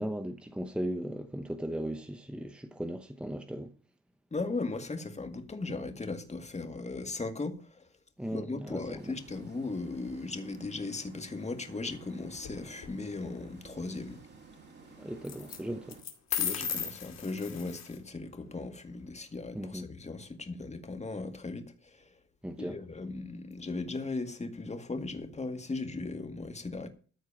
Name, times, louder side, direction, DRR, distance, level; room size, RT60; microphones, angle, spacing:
voice 1, 0.0-3.7 8.2-9.0 15.0-16.0 19.5-19.9 22.4-22.8, equal, 5° right, 1.0 m, -37 dB
voice 2, 4.3-7.9 8.3-14.2 16.3-22.2 22.6-26.9, left 3 dB, 20° left, 2.0 m, -37 dB
sound 1, 9.0-16.0, right 4 dB, 35° right, 4.4 m, -54 dB
sound 2, 12.4-12.9 15.2-15.6 15.9-18.0, left 8 dB, 60° left, 2.3 m, -35 dB
14.0 x 4.6 x 8.8 m
cardioid pair, 90°, 30 cm